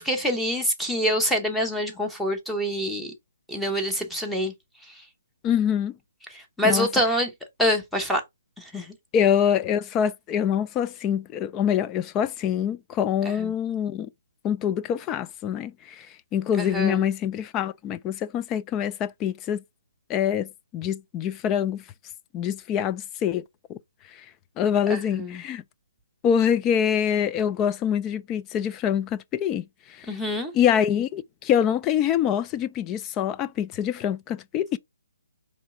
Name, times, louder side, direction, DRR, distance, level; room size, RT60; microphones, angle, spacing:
voice 1, 0.0-3.1 3.5-4.5 6.3-7.3 7.6-8.2 8.6-8.9 13.4-13.5 16.6-17.0 25.1-25.4 30.1-30.5, equal, ahead, 0.9 m, -26 dB
voice 2, 5.4-6.0 6.6-6.9 9.1-14.1 14.4-16.1 16.3-19.6 20.1-21.8 22.3-23.4 23.7-23.8 24.1-24.2 24.6-25.6 26.2-29.6 29.9-30.1 30.5-34.8, left 9 dB, 20° left, 0.3 m, -25 dB
4.4 x 3.1 x 3.7 m
hypercardioid pair, 145°, 0 cm